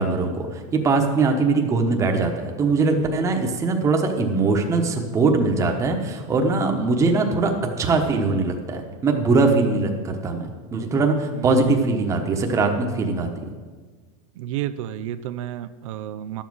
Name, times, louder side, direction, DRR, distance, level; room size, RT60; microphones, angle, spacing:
voice 1, 0.0-13.3, right 3 dB, 20° right, 3 dB, 1.1 m, -21 dB
voice 2, 11.3-11.8 14.4-16.4, right 11 dB, 80° right, 11 dB, 0.5 m, -31 dB
11.5 x 7.4 x 6.2 m, 1.5 s
supercardioid pair, 155°, 17 cm